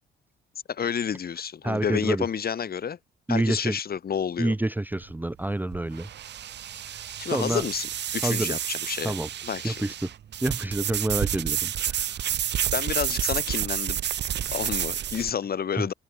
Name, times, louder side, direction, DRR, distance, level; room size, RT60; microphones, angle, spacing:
voice 1, 0.7-3.0 3.3-4.5 7.2-9.1 9.4-9.8 12.7-14.0 14.5-15.9, left 7 dB, 50° left, 3.9 m, -30 dB
voice 2, 1.6-2.3 3.3-3.8 4.4-6.1 6.9-7.6 8.2-8.6 9.0-9.3 9.6-10.1 10.4-12.1 15.7-15.8, right 1 dB, 10° right, 1.0 m, -28 dB
sound 1, 4.9-15.3, right 10 dB, 60° right, 1.3 m, -30 dB
open air
cardioid pair, 90°, 20 cm